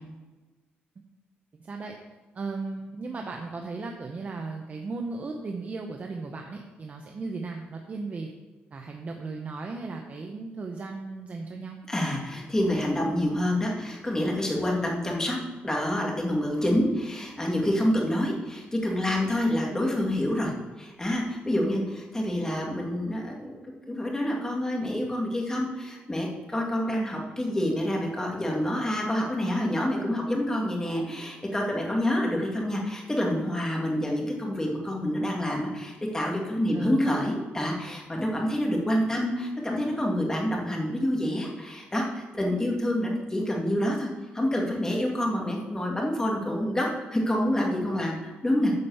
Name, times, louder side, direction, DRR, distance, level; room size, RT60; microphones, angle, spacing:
voice 1, 1.6-1.9 2.3-8.3 8.7-11.8 36.7-37.1, right 3 dB, 40° right, 2 dB, 0.9 m, -36 dB
voice 2, 11.9-15.4 15.6-20.5 20.8-23.6 23.9-44.1 44.3-48.7, left 1 dB, 15° left, -1 dB, 2.2 m, -27 dB
9.7 x 5.3 x 7.1 m, 1.2 s
cardioid pair, 115°, 4 cm